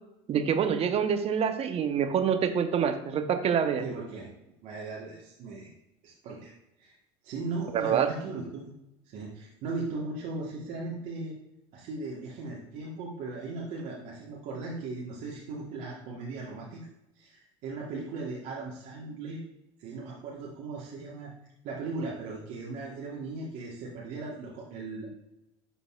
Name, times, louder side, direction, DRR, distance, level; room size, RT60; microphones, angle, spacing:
voice 1, 0.3-3.8 7.7-8.1, right 7 dB, 45° right, 8 dB, 0.9 m, -26 dB
voice 2, 3.8-4.3 4.6-5.7 6.0-6.5 6.8-7.0 7.2-8.7 9.0-11.3 11.7-16.9 17.1-19.4 19.8-21.3 21.6-25.1, right 3 dB, 65° right, -4 dB, 1.4 m, -38 dB
11.5 x 4.0 x 2.4 m, 0.90 s
supercardioid pair, 90°, 15 cm